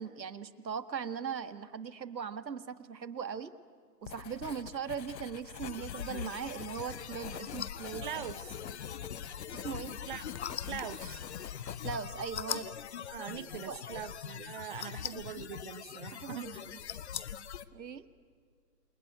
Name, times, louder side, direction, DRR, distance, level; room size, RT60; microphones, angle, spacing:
voice 1, 0.0-3.5 4.0-8.1 9.6-10.0 11.8-12.7 13.6-14.0 16.1-16.8 17.7-18.1, right 7 dB, 85° right, 12 dB, 1.8 m, -39 dB
Writing, 4.0-12.2, left 8 dB, 80° left, 1.0 m, -45 dB
sound 1, 5.6-17.7, left 9 dB, 40° left, 0.9 m, -42 dB
voice 2, 8.0-8.6 10.1-10.3 10.7-11.2 13.1-16.6, right 10 dB, 30° right, 16 dB, 0.8 m, -42 dB
28.5 x 22.0 x 9.4 m, 2.1 s
hypercardioid pair, 150°, 49 cm